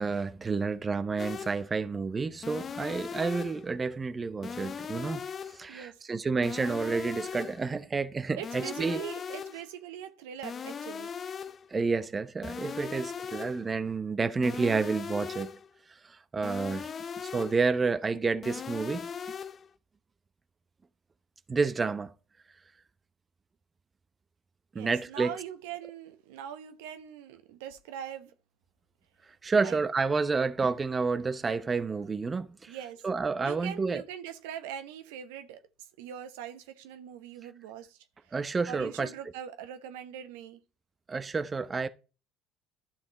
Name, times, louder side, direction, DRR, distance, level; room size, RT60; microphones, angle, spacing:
voice 1, 0.0-5.2 5.5-9.0 11.7-15.5 16.0-16.9 17.2-19.1 21.5-22.1 24.7-25.4 29.4-32.8 33.0-34.0 38.3-39.1 41.1-41.9, right 4 dB, 25° right, 0.8 m, -30 dB
sound 1, 1.2-1.7 2.4-3.7 4.4-5.7 6.4-7.7 8.4-9.7 10.4-11.7 12.4-13.7 14.4-15.7 16.4-17.7 18.4-19.7, left 7 dB, 40° left, 0.6 m, -39 dB
voice 2, 5.7-6.0 8.4-11.1 24.7-28.3 29.6-29.8 32.7-33.1 33.4-35.6 36.0-38.3 38.7-40.6, right 9 dB, 75° right, 1.0 m, -42 dB
12.0 x 5.8 x 4.3 m
hypercardioid pair, 70°, 0 cm